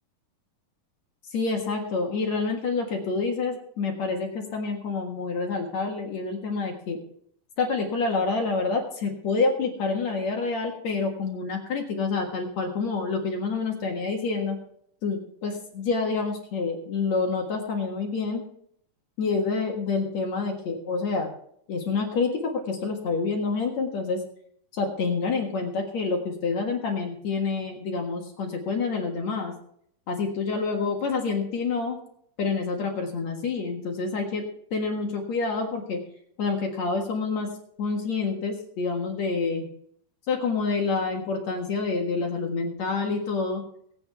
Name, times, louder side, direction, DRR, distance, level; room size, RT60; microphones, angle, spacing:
voice 1, 1.3-7.0 7.6-14.6 15.0-18.4 19.2-21.3 21.7-24.2 24.7-29.5 30.1-32.0 32.4-34.5 34.7-36.0 36.4-37.5 37.8-39.6 40.3-43.6, left 4 dB, 55° left, 1 dB, 2.6 m, -27 dB
22.5 x 8.6 x 3.4 m, 0.66 s
omnidirectional pair, 4.0 m